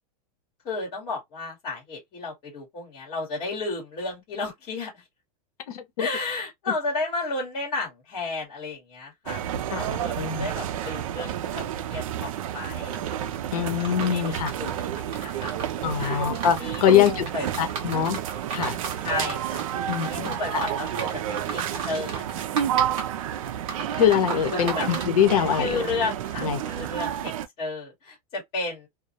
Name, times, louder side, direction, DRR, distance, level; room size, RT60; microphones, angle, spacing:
voice 1, 0.6-5.0 6.0-13.4 14.0-16.2 16.6-17.7 19.0-19.6 20.1-21.6 21.9-22.4 24.5-24.9 25.6-28.9, left 3 dB, 25° left, 1.1 m, -33 dB
voice 2, 5.7-6.1 9.7-10.5 13.5-14.5 15.8-17.2 17.6-18.2 18.5-18.8 19.9-20.6 24.0-25.8 26.4-26.6, left 9 dB, 75° left, 0.8 m, -23 dB
sound 1, 9.3-27.5, right 10 dB, 65° right, 0.4 m, -30 dB
sound 2, 12.9-25.7, right 4 dB, 25° right, 0.7 m, -37 dB
2.2 x 2.0 x 2.7 m
supercardioid pair, 175°, 19 cm